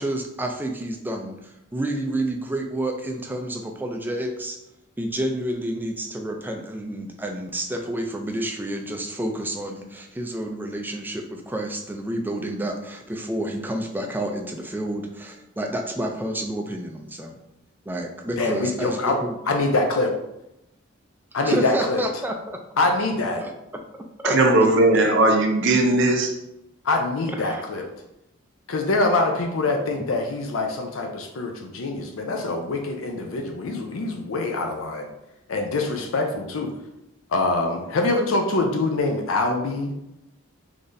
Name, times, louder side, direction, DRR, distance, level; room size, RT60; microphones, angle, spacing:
voice 1, 0.0-4.6 5.0-17.4 17.9-19.4 21.4-22.6 23.4-23.5 24.2-24.4 27.4-27.6, right 1 dB, 10° right, 3 dB, 0.4 m, -29 dB
voice 2, 18.4-19.2 19.5-20.1 21.3-22.0 22.8-23.4 26.8-27.8 28.7-35.1 35.5-36.7 37.3-39.9, left 2 dB, 75° left, 3 dB, 0.5 m, -24 dB
voice 3, 24.2-26.3, right 2 dB, 60° right, 3 dB, 0.6 m, -18 dB
3.9 x 3.1 x 2.6 m, 0.86 s
head